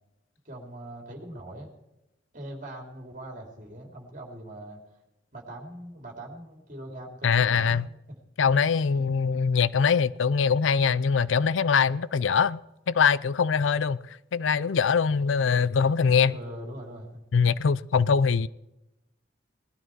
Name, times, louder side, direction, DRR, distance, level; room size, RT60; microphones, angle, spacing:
voice 1, 0.4-1.7 2.3-5.0 5.3-7.8 16.2-17.1, right 1 dB, 40° right, 3.2 m, -41 dB
voice 2, 7.2-7.9 8.4-12.6 12.9-16.3 17.3-18.5, left 6 dB, 80° left, 0.5 m, -23 dB
19.5 x 12.5 x 4.6 m
head